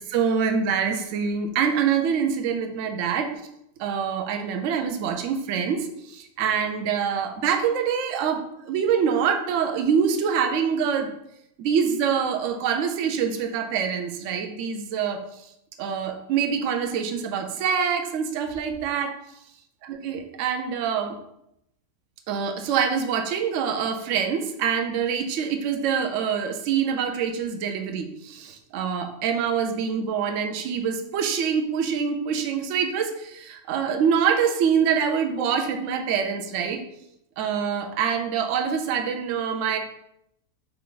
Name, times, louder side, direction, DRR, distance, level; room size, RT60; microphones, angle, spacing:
voice 1, 0.1-3.3 3.8-11.1 11.6-15.2 15.8-19.1 19.8-21.1 22.3-36.8 37.4-39.8, right 7 dB, 65° right, 5 dB, 0.8 m, -25 dB
5.6 x 2.5 x 3.7 m, 0.78 s
omnidirectional pair, 1.6 m